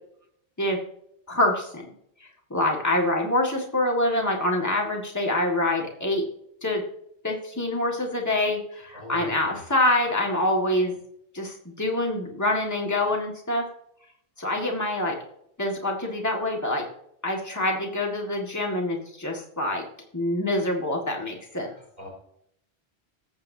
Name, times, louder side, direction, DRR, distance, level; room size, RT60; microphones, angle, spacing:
voice 1, 1.3-1.9 2.5-6.2 6.6-6.8 7.2-10.9 11.3-13.7 14.4-15.2 15.6-16.9 17.2-19.8 20.1-21.7, left 1 dB, 15° left, 0 dB, 1.8 m, -25 dB
voice 2, 8.9-9.6 21.6-22.1, left 1 dB, 45° left, -3 dB, 4.6 m, -43 dB
19.5 x 8.0 x 2.7 m, 0.72 s
omnidirectional pair, 1.1 m